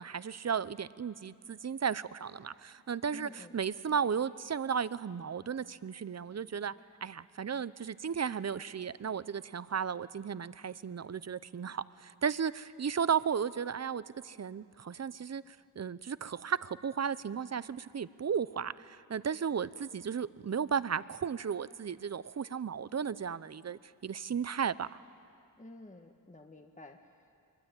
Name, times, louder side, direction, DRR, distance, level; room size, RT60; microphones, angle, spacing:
voice 1, 0.0-6.7 7.0-15.4 15.8-24.9, right 7 dB, 45° right, 17 dB, 0.7 m, -34 dB
voice 2, 3.1-3.6 25.6-27.3, left 2 dB, 20° left, 4 dB, 1.4 m, -51 dB
23.5 x 22.5 x 9.1 m, 2.4 s
wide cardioid pair, 65°, 36 cm